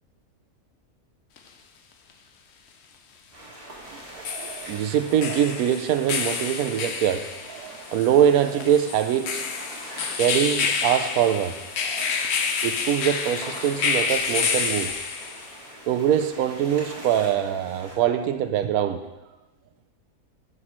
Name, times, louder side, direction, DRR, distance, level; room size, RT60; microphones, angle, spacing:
sound 1, 1.4-1.5 4.0-15.6, left 6 dB, 60° left, 0.8 m, -29 dB
sound 2, 3.3-18.0, right 1 dB, 20° right, 2.0 m, -43 dB
voice 1, 4.1-9.4 10.2-12.3 12.6-15.0 15.9-19.1, right 9 dB, 80° right, 10 dB, 1.1 m, -23 dB
10.0 x 6.3 x 3.1 m, 1.0 s
omnidirectional pair, 1.6 m